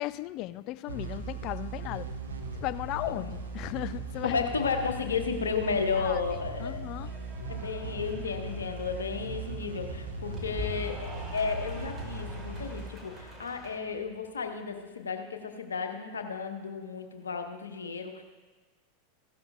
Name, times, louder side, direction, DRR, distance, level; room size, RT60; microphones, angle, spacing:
voice 1, 0.0-2.1 2.6-4.4 5.9-7.1, left 16 dB, 45° left, 17 dB, 0.3 m, -36 dB
sound 1, 0.9-14.2, right 2 dB, 85° right, 1.2 m, -39 dB
voice 2, 4.2-6.8 7.5-18.2, left 5 dB, 80° left, 5 dB, 1.0 m, -33 dB
Cheering / Applause, 6.1-13.8, left 1 dB, 15° right, 2.6 m, -45 dB
15.5 x 12.0 x 2.3 m, 1.3 s
figure-of-eight pair, 90°, 0 cm